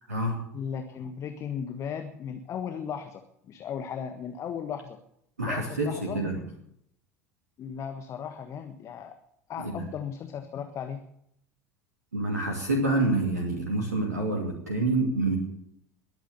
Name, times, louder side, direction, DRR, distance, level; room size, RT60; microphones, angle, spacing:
voice 1, 0.5-5.0 5.4-6.5 7.6-9.2 9.5-11.1, left 7 dB, 35° left, 7 dB, 1.5 m, -36 dB
voice 2, 5.4-6.4 9.6-9.8 12.1-15.4, right 2 dB, 75° right, 2 dB, 2.6 m, -27 dB
22.0 x 9.2 x 7.0 m, 0.75 s
figure-of-eight pair, 70°, 9 cm